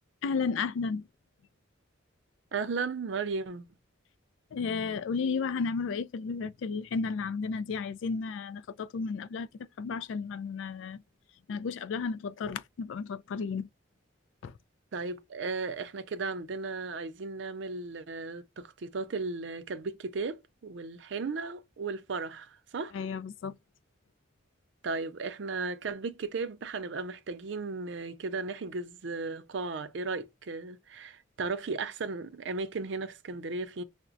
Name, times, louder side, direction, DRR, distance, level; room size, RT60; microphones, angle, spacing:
voice 1, 0.2-1.1 4.5-9.5 9.8-11.0 11.5-13.7 14.4-14.5 22.9-23.6, left 5 dB, 70° left, 0.3 m, -33 dB
voice 2, 2.5-3.7 14.9-22.9 24.8-33.8, right 4 dB, 65° right, 0.5 m, -35 dB
5.7 x 2.1 x 2.6 m
head